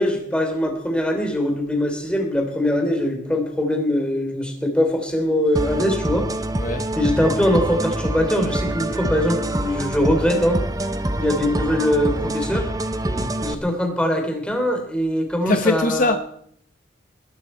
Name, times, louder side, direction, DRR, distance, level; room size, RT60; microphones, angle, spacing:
voice 1, 0.0-6.3 6.9-10.6 11.2-12.7 13.4-16.2, left 1 dB, 5° left, 3.2 m, -22 dB
sound 1, 5.6-13.6, right 1 dB, 20° right, 0.9 m, -26 dB
voice 2, 6.6-6.9 13.1-13.4 15.4-16.2, left 2 dB, 45° left, 0.9 m, -22 dB
20.5 x 12.5 x 4.5 m
head